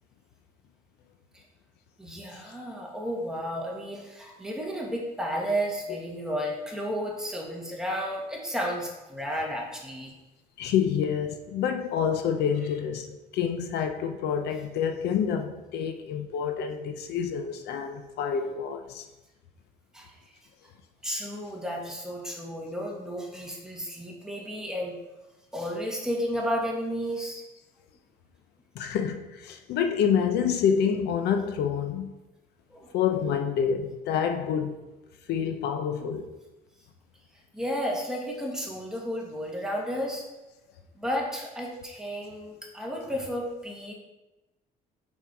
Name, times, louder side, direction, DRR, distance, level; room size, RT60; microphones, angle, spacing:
voice 1, 2.0-10.1 19.9-20.1 21.0-25.0 25.5-27.4 32.7-32.9 36.0-36.1 37.5-40.2 40.9-43.9, equal, 5° right, -2 dB, 1.5 m, -32 dB
voice 2, 10.6-13.1 13.3-19.1 28.8-32.1 32.9-34.7 35.3-36.3, left 7 dB, 75° left, 6 dB, 0.6 m, -27 dB
5.7 x 4.5 x 4.8 m, 1.0 s
cardioid pair, 110°, 17 cm